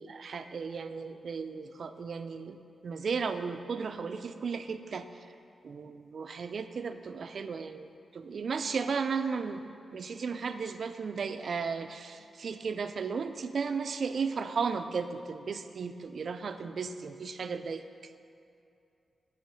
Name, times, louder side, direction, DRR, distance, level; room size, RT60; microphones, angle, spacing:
voice 1, 0.0-2.6 2.8-5.0 5.6-17.8, right 5 dB, 60° right, 10 dB, 0.3 m, -35 dB
8.1 x 4.8 x 5.1 m, 2.6 s
wide cardioid pair, 120°, 0 cm